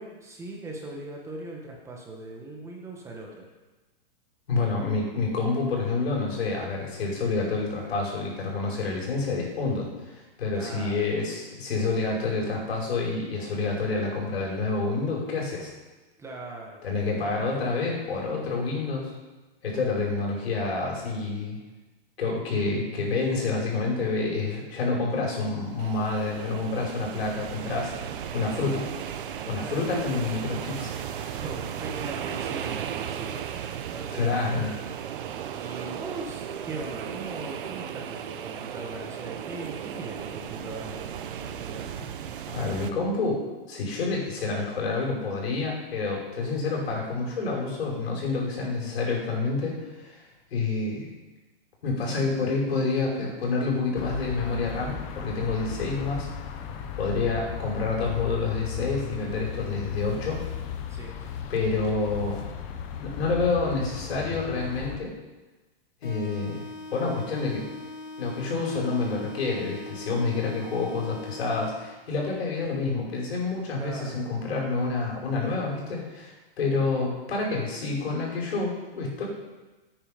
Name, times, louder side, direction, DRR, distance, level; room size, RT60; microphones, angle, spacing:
voice 1, 0.0-3.5 10.5-11.1 16.2-16.8 29.6-29.8 31.3-34.6 35.5-41.9 60.9-61.1 73.8-74.2, right 2 dB, 10° right, -1 dB, 1.4 m, -40 dB
voice 2, 4.5-15.7 16.8-19.1 19.6-21.6 22.2-28.1 28.3-28.8 29.5-31.4 34.1-34.8 42.5-50.2 50.5-51.1 51.8-56.3 57.0-60.4 61.5-62.5 63.0-65.1 66.0-66.6 66.9-67.7 68.2-79.2, left 3 dB, 85° left, -2 dB, 5.3 m, -28 dB
sound 1, 25.6-42.9, right 9 dB, 60° right, 1.2 m, -36 dB
sound 2, 54.0-65.0, left 7 dB, 20° left, 0.8 m, -36 dB
sound 3, 66.0-72.0, left 3 dB, 50° left, 3.9 m, -41 dB
17.0 x 9.1 x 5.2 m, 1.2 s
supercardioid pair, 170°, 30 cm